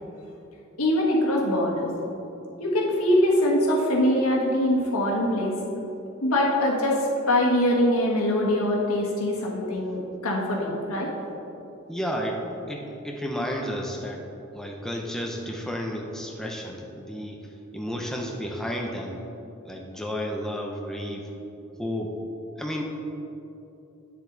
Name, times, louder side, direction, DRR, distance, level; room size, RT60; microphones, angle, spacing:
voice 1, 0.8-1.9 2.6-5.6 6.2-11.1, left 1 dB, 85° left, -2 dB, 1.5 m, -23 dB
voice 2, 11.9-14.2 14.5-17.4 17.7-19.2 19.6-21.3 21.8-22.2 22.6-22.8, equal, ahead, 0 dB, 0.6 m, -32 dB
9.4 x 7.0 x 4.0 m, 2.9 s
head